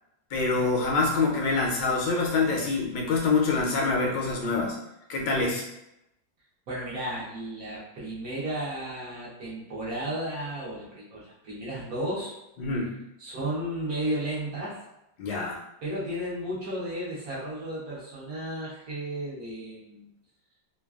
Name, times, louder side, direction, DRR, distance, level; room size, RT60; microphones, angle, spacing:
voice 1, 0.3-4.8 5.1-5.6 12.6-12.9 15.2-15.6, left 3 dB, 75° left, -1 dB, 1.2 m, -25 dB
voice 2, 6.7-12.4 13.2-14.8 15.8-20.1, right 1 dB, 60° right, -7 dB, 1.0 m, -33 dB
3.2 x 2.2 x 2.3 m, 0.87 s
omnidirectional pair, 2.0 m